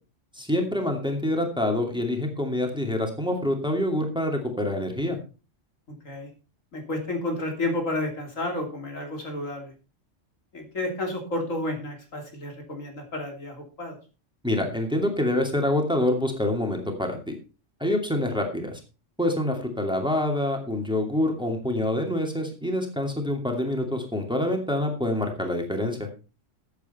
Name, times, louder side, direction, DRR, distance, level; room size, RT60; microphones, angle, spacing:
voice 1, 0.3-5.2 14.4-17.3 17.8-18.8 19.2-26.1, left 1 dB, 5° right, 3 dB, 2.4 m, -26 dB
voice 2, 6.7-9.7 10.5-14.0, left 2 dB, 85° left, 2 dB, 3.5 m, -31 dB
14.0 x 8.4 x 4.3 m, 0.32 s
omnidirectional pair, 1.3 m